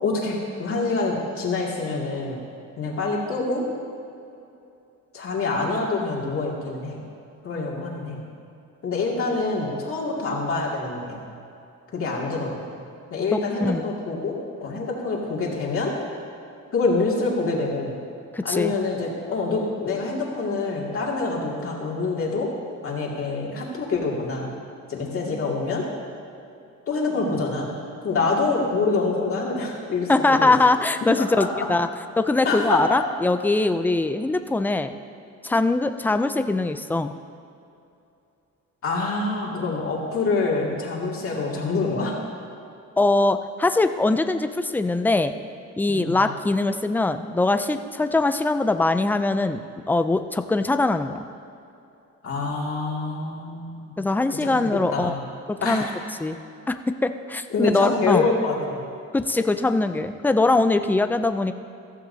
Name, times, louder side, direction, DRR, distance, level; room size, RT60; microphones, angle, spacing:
voice 1, 0.0-2.4 2.8-3.7 5.1-7.0 7.4-8.3 8.8-11.3 11.9-12.8 13.1-15.9 16.7-17.9 18.4-22.5 22.8-24.5 24.9-25.8 26.9-27.7 28.0-30.5 31.0-31.7 32.4-32.8 38.8-42.1 45.9-46.3 52.2-54.0 54.4-54.6 54.9-55.2 55.6-55.8 57.5-58.9, left 3 dB, 45° left, -3 dB, 2.3 m, -26 dB
voice 2, 13.3-13.9 18.3-18.7 30.1-31.9 32.2-34.9 35.4-37.1 43.0-45.3 45.8-49.6 49.9-51.2 54.0-55.1 55.5-55.8 56.2-56.4 56.7-58.3 59.1-61.5, left 2 dB, 5° left, 9 dB, 0.3 m, -22 dB
15.0 x 14.5 x 2.7 m, 2.7 s
cardioid pair, 140°, 31 cm